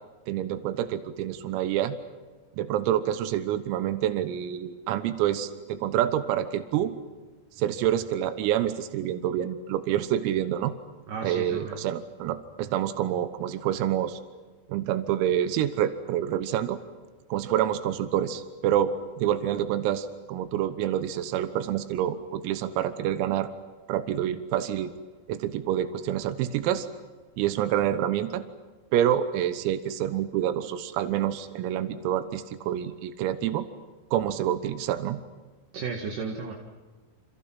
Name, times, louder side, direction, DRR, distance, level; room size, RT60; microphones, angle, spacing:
voice 1, 0.3-2.0 2.6-6.9 7.6-10.7 11.2-14.2 14.7-16.8 17.3-18.9 19.2-23.5 23.9-24.9 25.3-26.9 27.4-28.4 28.9-33.7 34.1-35.2, right 11 dB, 90° right, 11 dB, 3.9 m, -27 dB
voice 2, 11.1-11.8 35.7-36.5, right 5 dB, 55° right, 1 dB, 2.7 m, -34 dB
29.0 x 29.0 x 5.8 m, 1.3 s
omnidirectional pair, 5.9 m